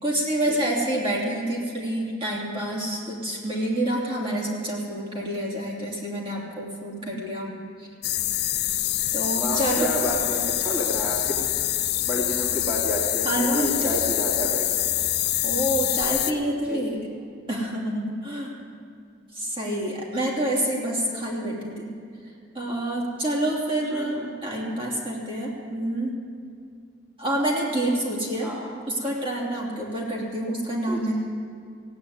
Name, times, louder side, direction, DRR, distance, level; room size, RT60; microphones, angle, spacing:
voice 1, 0.0-7.9 9.1-9.9 13.2-13.9 15.4-17.0 17.5-18.5 19.3-21.9 22.5-26.2 27.2-28.5 28.9-31.1, right 1 dB, 30° right, -3 dB, 2.8 m, -27 dB
sound 1, 8.0-16.3, left 14 dB, 60° left, 0.6 m, -25 dB
voice 2, 9.3-11.4 12.0-14.7 16.6-16.8 23.9-24.3 28.4-28.7 30.9-31.0, equal, 10° right, -6 dB, 2.4 m, -30 dB
16.0 x 8.9 x 9.4 m, 2.3 s
head